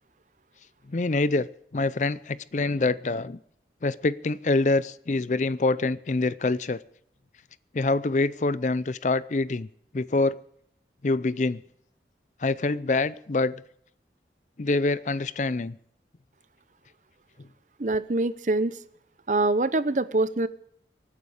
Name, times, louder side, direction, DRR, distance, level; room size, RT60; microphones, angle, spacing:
voice 1, 0.9-1.5 1.7-3.4 3.8-6.8 7.7-9.7 9.9-10.4 11.0-11.6 12.4-13.6 14.6-15.7, left 3 dB, 45° left, 18 dB, 0.5 m, -25 dB
voice 2, 17.8-18.8 19.3-20.5, right 2 dB, 45° right, 15 dB, 0.7 m, -24 dB
25.0 x 9.5 x 4.9 m, 0.68 s
head